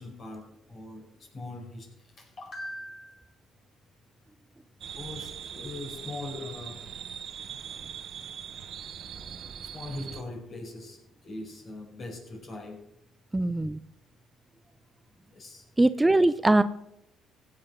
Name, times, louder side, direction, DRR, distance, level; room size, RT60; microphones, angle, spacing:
voice 1, 0.0-1.9 2.2-3.3 5.0-6.8 9.7-12.8 15.3-15.6, left 2 dB, 50° left, 1 dB, 4.9 m, -41 dB
sound 1, 4.8-10.2, right 8 dB, 60° right, 1.1 m, -41 dB
voice 2, 13.3-13.8 15.8-16.6, right 2 dB, 15° right, 12 dB, 0.6 m, -21 dB
16.0 x 7.8 x 5.3 m, 0.80 s
supercardioid pair, 75°, 0 cm